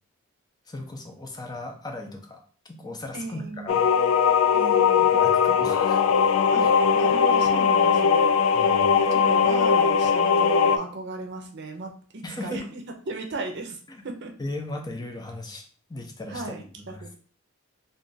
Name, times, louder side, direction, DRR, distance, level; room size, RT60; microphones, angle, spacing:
voice 1, 0.7-2.4 2.8-3.8 5.1-6.0 6.6-6.7 8.5-8.9 12.2-12.6 13.9-14.0 14.4-15.6 15.9-16.6 16.9-17.0, left 2 dB, 20° left, 3 dB, 0.6 m, -36 dB
voice 2, 3.1-3.8 4.5-5.1 6.5-6.7 6.9-8.7 8.9-14.3 16.3-17.1, right 3 dB, 55° right, 3 dB, 0.6 m, -36 dB
sound 1, 3.7-10.8, left 6 dB, 80° left, 0.3 m, -20 dB
2.5 x 2.4 x 3.9 m, 0.42 s
head